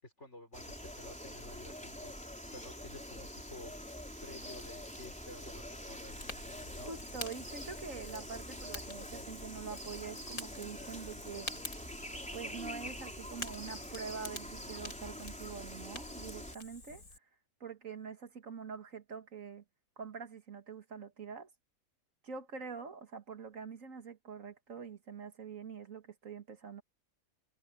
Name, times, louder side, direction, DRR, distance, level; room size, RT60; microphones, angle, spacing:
voice 1, 0.0-2.2 2.5-3.7 4.2-6.2 6.8-6.9, left 2 dB, 55° left, 5.8 m, -51 dB
sound 1, 0.5-16.5, equal, 5° left, 3.6 m, -45 dB
Fire, 6.1-17.2, left 2 dB, 90° left, 4.9 m, -48 dB
voice 2, 6.9-11.5 12.3-17.0 17.6-19.6 20.0-21.5 22.2-26.8, right 5 dB, 65° right, 2.1 m, -45 dB
omnidirectional pair, 1.5 m